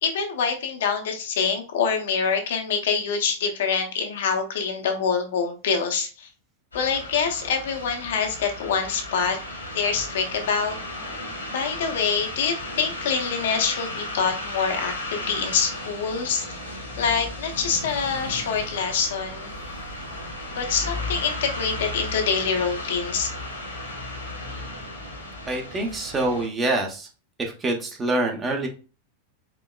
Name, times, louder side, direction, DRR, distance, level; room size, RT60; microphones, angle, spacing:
voice 1, 0.0-6.3 6.7-9.4 9.7-10.7 11.5-16.6 17.0-19.5 20.6-23.3, left 6 dB, 60° left, 4 dB, 0.7 m, -25 dB
sound 1, 6.7-26.5, left 2 dB, 75° left, 1.4 m, -35 dB
voice 2, 25.5-27.1 27.4-28.7, right 2 dB, 20° right, 2 dB, 0.9 m, -25 dB
4.5 x 2.9 x 2.3 m, 0.34 s
figure-of-eight pair, 90°, 0 cm